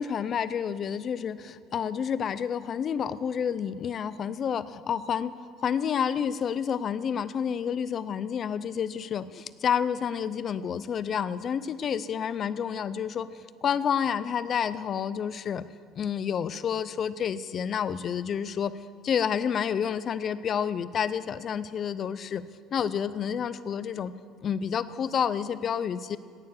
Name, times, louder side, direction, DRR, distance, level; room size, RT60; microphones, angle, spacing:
voice 1, 0.0-5.3 5.6-13.3 13.6-15.6 16.0-18.7 19.0-22.4 22.7-24.1 24.4-26.2, left 8 dB, 30° left, 15 dB, 0.4 m, -29 dB
17.5 x 6.9 x 8.2 m, 2.3 s
cardioid pair, 175°, 0 cm